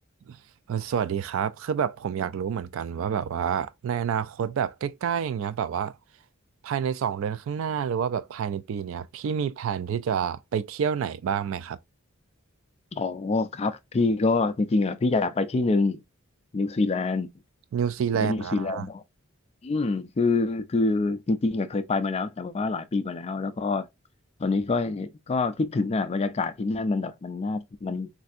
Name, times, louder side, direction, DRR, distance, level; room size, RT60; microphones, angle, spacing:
voice 1, 0.7-5.9 6.6-11.8 17.7-18.8, right 7 dB, 65° right, 0.3 m, -28 dB
voice 2, 12.9-16.0 16.5-17.3 18.2-19.0 19.6-23.9 24.4-28.1, left 3 dB, 30° left, 0.3 m, -26 dB
3.3 x 2.6 x 2.4 m
head